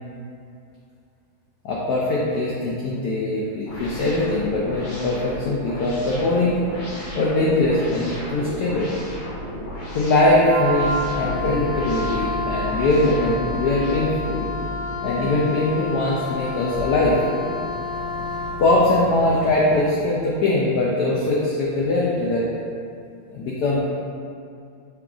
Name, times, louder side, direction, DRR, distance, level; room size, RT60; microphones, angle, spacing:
voice 1, 1.6-6.6 7.1-9.0 9.9-14.4 15.0-17.2 18.6-22.4 23.3-23.9, left 2 dB, 75° left, -4 dB, 0.9 m, -21 dB
sound 1, 3.7-13.9, equal, 60° left, 1.5 m, -34 dB
Wind instrument woodwind instrument, 10.4-18.6, left 2 dB, 85° right, 1.5 m, -30 dB
Boat Water vehicle, 10.8-19.8, left 2 dB, 70° right, 1.4 m, -35 dB
5.8 x 2.4 x 3.8 m, 2.4 s
omnidirectional pair, 2.2 m